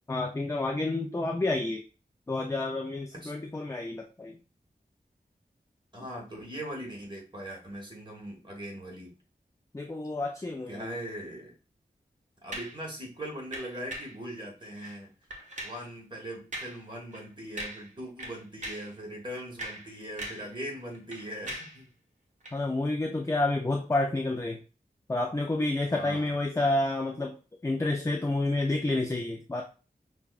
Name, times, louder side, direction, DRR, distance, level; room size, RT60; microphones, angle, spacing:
voice 1, 0.1-1.8 2.3-4.4 9.7-11.0 22.5-24.6 25.1-27.4 27.6-29.6, left 2 dB, 15° left, 2 dB, 0.5 m, -29 dB
voice 2, 5.9-9.1 10.7-11.5 12.4-15.1 15.6-21.9 25.9-26.4, equal, 30° right, -1 dB, 1.5 m, -40 dB
sound 1, 12.5-12.8 13.5-14.2 14.8-15.0 15.3-15.9 16.5-16.8 17.1-17.3 17.6-17.9 18.2-18.9 19.4-20.5 20.8-21.8 22.4-22.6, right 1 dB, 50° right, 1.1 m, -40 dB
5.7 x 2.3 x 2.4 m, 0.34 s
wide cardioid pair, 55°, 17 cm